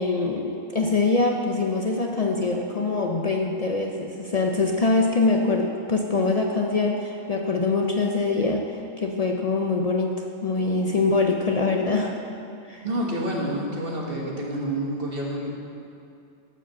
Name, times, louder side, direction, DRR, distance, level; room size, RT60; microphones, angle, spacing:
voice 1, 0.0-12.2 12.7-12.8, left 3 dB, 50° left, 2 dB, 0.4 m, -24 dB
voice 2, 12.8-15.5, right 1 dB, 45° right, -2 dB, 1.7 m, -28 dB
11.0 x 5.0 x 7.1 m, 2.5 s
omnidirectional pair, 1.3 m